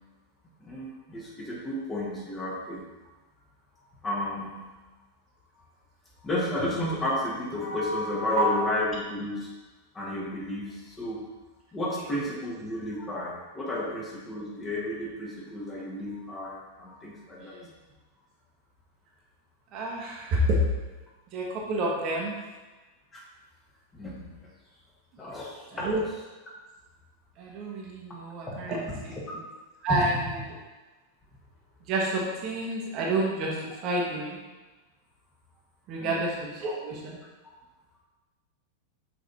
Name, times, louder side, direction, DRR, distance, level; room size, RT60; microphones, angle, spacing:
voice 1, 0.6-2.8 4.0-4.7 6.2-9.5 9.9-11.2 11.7-17.6 23.1-23.2 23.9-24.3 25.2-26.0 28.4-28.7 29.1-29.2 36.0-36.3, left 1 dB, 20° left, -5 dB, 1.8 m, -32 dB
voice 2, 8.3-8.6 17.4-17.7 19.7-20.6 21.3-22.4 25.7-26.0 27.4-29.1 29.8-30.5 31.8-33.6 33.8-34.4 35.9-37.2, right 1 dB, 40° right, -3 dB, 1.2 m, -29 dB
6.2 x 4.1 x 4.2 m, 1.2 s
figure-of-eight pair, 90°, 0 cm